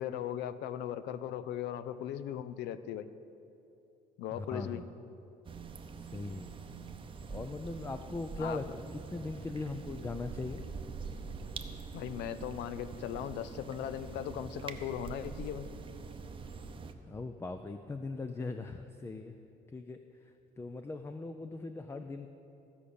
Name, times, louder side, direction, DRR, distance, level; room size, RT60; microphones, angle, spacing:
voice 1, 0.0-3.1 4.2-4.8 8.4-8.6 11.9-15.7, left 10 dB, 85° left, 14 dB, 0.5 m, -38 dB
voice 2, 4.3-4.9 6.0-6.5 7.3-10.6 17.1-19.3 19.7-20.0 20.6-22.3, left 3 dB, 15° left, 7 dB, 0.4 m, -40 dB
sound 1, 5.4-16.9, right 4 dB, 30° right, 0.7 m, -44 dB
14.5 x 5.0 x 6.9 m, 2.8 s
cardioid pair, 110°, 17 cm